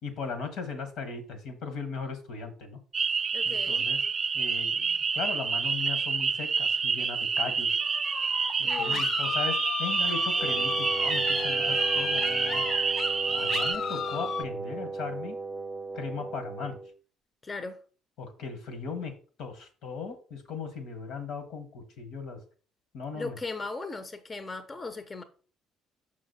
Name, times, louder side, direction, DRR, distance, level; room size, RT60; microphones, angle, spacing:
voice 1, 0.0-2.8 3.4-4.0 4.3-7.8 8.6-12.6 13.3-15.4 15.9-16.8 18.2-19.1 19.4-22.4 22.9-23.4, left 5 dB, 70° left, 1.4 m, -38 dB
sound 1, 2.9-13.7, right 5 dB, 40° right, 0.4 m, -28 dB
voice 2, 3.3-3.8 8.6-9.1 17.4-17.8 23.1-25.2, left 3 dB, 30° left, 0.8 m, -37 dB
sound 2, 7.8-14.4, left 8 dB, 50° left, 0.3 m, -34 dB
Wind instrument woodwind instrument, 10.4-17.0, right 3 dB, 5° right, 0.7 m, -36 dB
6.3 x 5.2 x 4.1 m
hypercardioid pair, 55°, 0 cm